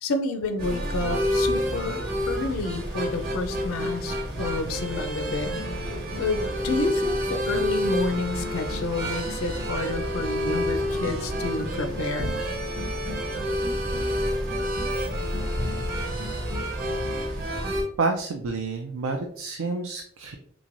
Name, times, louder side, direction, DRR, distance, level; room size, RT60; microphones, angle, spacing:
voice 1, 0.0-2.0 2.3-5.6 6.2-12.3, left 3 dB, 80° left, 7 dB, 0.5 m, -30 dB
sound 1, 0.6-17.8, equal, 45° right, 1.1 m, -28 dB
voice 2, 18.0-20.3, right 3 dB, 85° right, 4 dB, 0.4 m, -29 dB
3.6 x 3.1 x 2.5 m, 0.62 s
head